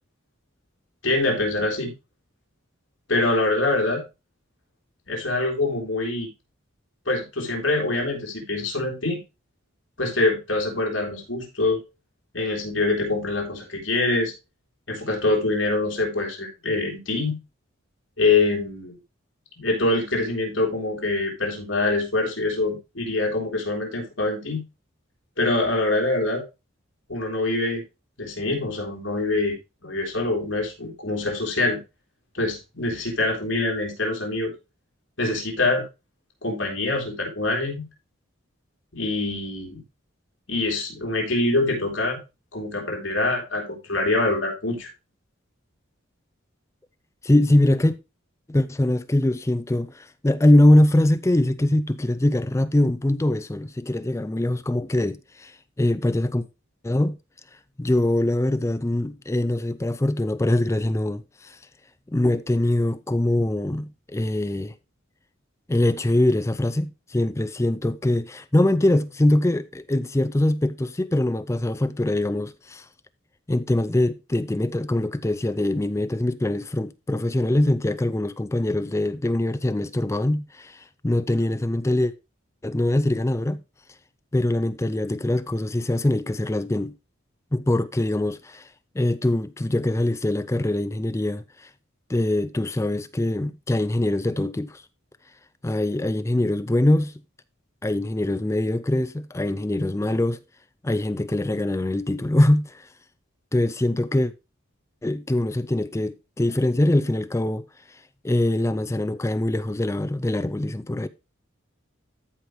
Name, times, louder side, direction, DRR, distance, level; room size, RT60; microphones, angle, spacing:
voice 1, 1.0-1.9 3.1-4.0 5.1-6.3 7.0-9.2 10.0-11.8 12.3-14.3 14.9-17.4 18.2-19.0 19.6-24.6 25.4-26.4 27.1-27.8 28.2-29.6 29.8-31.8 32.3-34.5 35.2-35.8 36.4-37.9 38.9-39.8 40.5-42.2 42.5-44.9, left 2 dB, 65° left, 3.3 m, -24 dB
voice 2, 47.2-48.0 48.5-56.5 56.8-57.1 57.8-61.6 62.1-64.7 65.7-72.9 73.5-82.1 82.6-83.6 84.3-87.0 87.5-88.7 88.9-91.7 92.1-94.8 95.6-97.1 97.8-100.4 100.8-102.9 103.5-104.3 105.0-107.6 108.2-111.1, left 1 dB, 15° left, 0.4 m, -23 dB
14.0 x 5.0 x 3.1 m
head